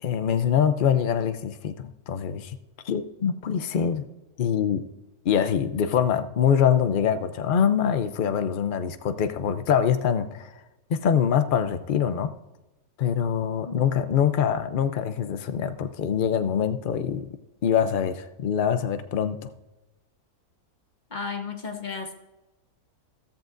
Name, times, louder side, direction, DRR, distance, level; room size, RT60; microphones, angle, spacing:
voice 1, 0.0-2.6 2.8-4.0 4.4-4.8 5.2-10.5 10.9-12.3 13.0-17.3 17.6-19.5, left 8 dB, 70° left, 10 dB, 0.5 m, -24 dB
voice 2, 21.1-22.1, left 5 dB, 35° left, 3 dB, 1.1 m, -33 dB
14.0 x 13.5 x 2.6 m, 1.0 s
omnidirectional pair, 1.6 m